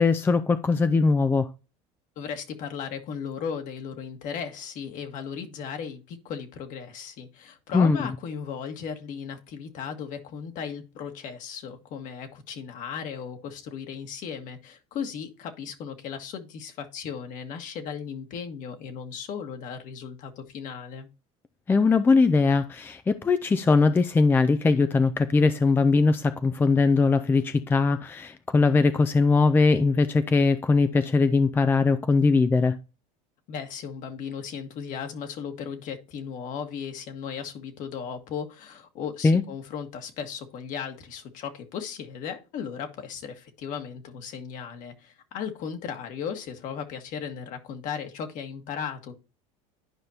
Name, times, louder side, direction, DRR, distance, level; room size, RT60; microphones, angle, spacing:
voice 1, 0.0-1.5 7.7-8.0 21.7-32.8 39.2-39.4, left 4 dB, 10° left, 0.4 m, -21 dB
voice 2, 2.1-21.1 33.5-49.1, left 7 dB, 55° left, 1.7 m, -36 dB
11.5 x 5.2 x 2.8 m
supercardioid pair, 130°, 16 cm